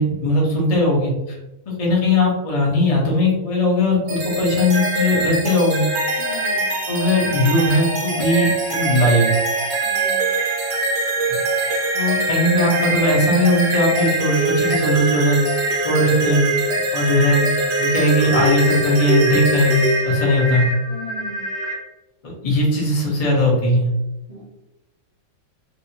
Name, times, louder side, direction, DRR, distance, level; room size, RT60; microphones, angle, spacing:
voice 1, 0.0-1.4 1.8-5.8 6.9-9.4 11.9-15.4 15.8-16.4 16.9-17.4 17.8-20.7 22.2-23.9, left 1 dB, 35° left, -4 dB, 0.6 m, -19 dB
sound 1, 4.1-21.7, right 1 dB, 65° right, 0.7 m, -22 dB
voice 2, 6.2-6.7 9.8-10.3 20.9-21.4 24.3-24.4, left 1 dB, 85° right, -8 dB, 0.3 m, -37 dB
2.8 x 2.7 x 2.7 m, 0.95 s
omnidirectional pair, 1.9 m